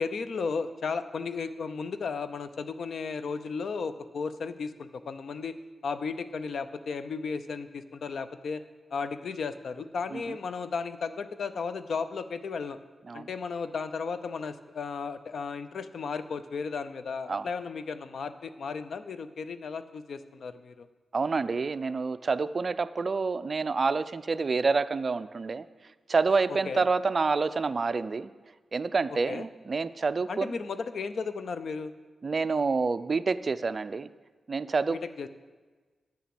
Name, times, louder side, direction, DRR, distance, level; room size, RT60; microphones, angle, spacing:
voice 1, 0.0-5.5 5.8-8.6 8.9-12.8 13.1-20.9 26.5-26.8 29.1-29.5 30.3-31.9 34.9-35.3, left 5 dB, 70° left, 12 dB, 0.6 m, -34 dB
voice 2, 21.1-25.6 26.1-28.3 28.7-30.5 32.2-34.1 34.5-35.0, right 4 dB, 45° right, 13 dB, 0.4 m, -28 dB
9.7 x 7.1 x 7.7 m, 1.3 s
cardioid pair, 90°, 0 cm